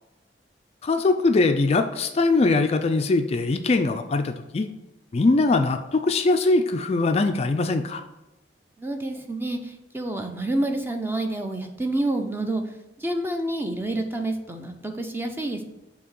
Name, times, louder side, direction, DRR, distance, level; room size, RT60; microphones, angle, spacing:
voice 1, 0.8-4.7 5.1-8.0, left 3 dB, 35° left, 7 dB, 0.3 m, -21 dB
voice 2, 8.8-12.6 13.0-15.6, right 1 dB, 10° right, 5 dB, 0.6 m, -28 dB
6.8 x 2.9 x 5.4 m, 0.99 s
head